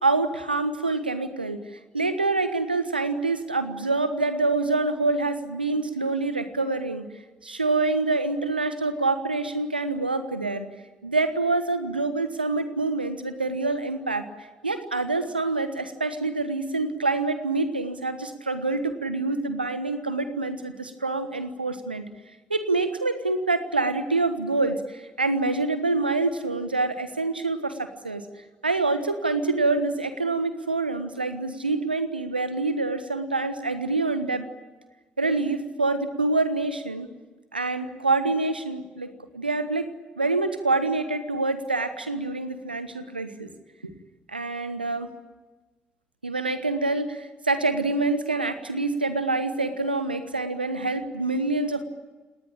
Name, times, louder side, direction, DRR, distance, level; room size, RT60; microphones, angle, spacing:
voice 1, 0.0-1.6 1.9-7.0 7.4-10.7 11.0-22.0 22.5-27.8 28.0-28.2 28.6-34.5 35.2-37.1 37.5-39.9 40.2-43.5 44.3-45.1 46.2-51.8, right 3 dB, 90° right, 10 dB, 1.3 m, -26 dB
29.5 x 19.0 x 8.8 m, 1.2 s
figure-of-eight pair, 40°, 5 cm